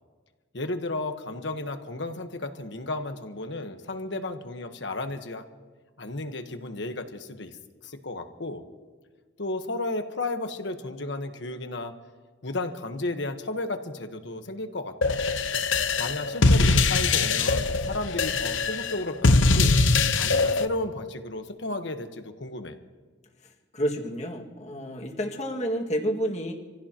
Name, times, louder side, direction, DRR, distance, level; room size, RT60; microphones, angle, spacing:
voice 1, 0.5-5.4 6.0-7.5 7.8-8.6 9.4-11.9 12.4-15.2 16.0-19.8 20.1-22.8, left 2 dB, 70° left, 7 dB, 1.3 m, -33 dB
sound 1, 15.0-20.6, left 3 dB, 85° left, 0.9 m, -22 dB
voice 2, 23.4-26.5, equal, 35° left, 1 dB, 1.9 m, -30 dB
27.5 x 16.0 x 3.0 m, 1.5 s
head